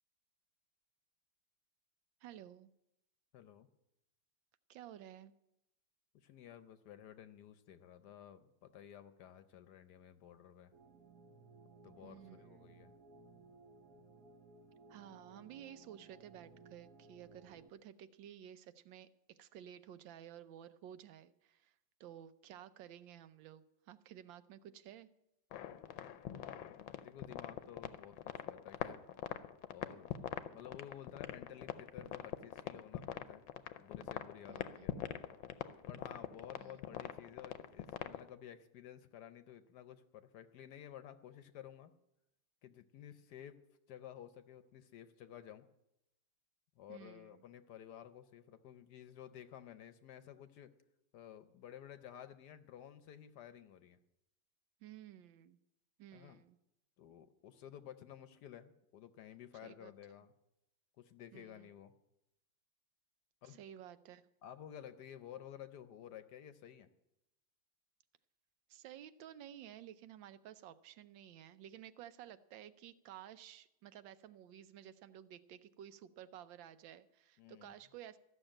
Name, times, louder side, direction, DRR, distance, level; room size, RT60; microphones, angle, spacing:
voice 1, 2.2-2.7 4.7-5.3 12.0-12.7 14.9-25.1 34.5-34.9 36.5-36.8 46.9-47.4 54.8-55.6 56.0-56.6 59.6-59.9 61.3-61.7 63.4-64.3 68.7-78.2, right 10 dB, 80° right, 12 dB, 1.4 m, -54 dB
voice 2, 3.3-3.7 6.1-10.7 11.8-12.9 26.6-29.0 29.7-30.1 30.5-33.4 33.8-35.1 35.8-41.9 42.6-43.6 43.9-45.7 46.8-50.7 51.1-54.0 56.1-56.4 57.0-60.3 61.0-61.9 63.4-63.6 64.4-66.9 77.4-77.7, left 10 dB, 65° left, 11 dB, 1.2 m, -53 dB
sound 1, 10.7-17.7, right 3 dB, 60° right, 1.3 m, -60 dB
sound 2, 25.5-38.3, left 11 dB, 85° left, 1.4 m, -43 dB
14.0 x 6.5 x 8.8 m, 0.86 s
omnidirectional pair, 2.1 m